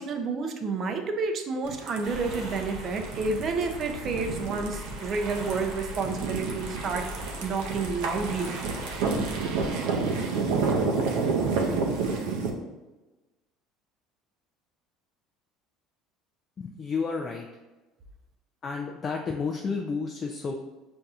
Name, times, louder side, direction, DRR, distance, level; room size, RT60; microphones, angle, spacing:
voice 1, 0.0-8.6, right 4 dB, 40° right, 5 dB, 0.5 m, -30 dB
sound 1, 1.7-12.5, right 4 dB, 85° right, 0.6 m, -30 dB
sound 2, 2.0-9.7, equal, 55° right, 1.0 m, -40 dB
voice 2, 16.6-17.5 18.6-20.5, left 5 dB, 30° left, 1 dB, 0.3 m, -31 dB
5.4 x 2.6 x 2.3 m, 1.1 s
cardioid pair, 130°, 0 cm